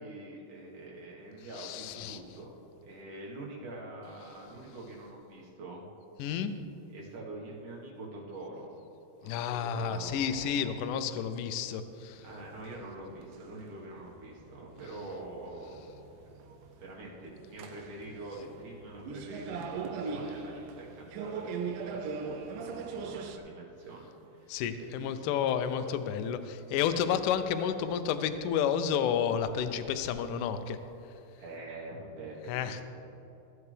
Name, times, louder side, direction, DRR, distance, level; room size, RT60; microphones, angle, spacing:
voice 1, 0.0-5.9 6.9-8.7 9.2-10.9 12.2-15.9 16.8-24.5 24.8-25.3 31.4-32.8, right 2 dB, 60° right, -4 dB, 2.8 m, -45 dB
voice 2, 1.5-2.2 6.2-6.5 9.2-12.2 24.5-30.8 32.5-32.8, left 8 dB, 85° left, 9 dB, 1.8 m, -31 dB
sound 1, 12.1-23.4, right 5 dB, 80° right, 1.9 m, -41 dB
15.0 x 8.4 x 3.3 m, 2.9 s
omnidirectional pair, 4.4 m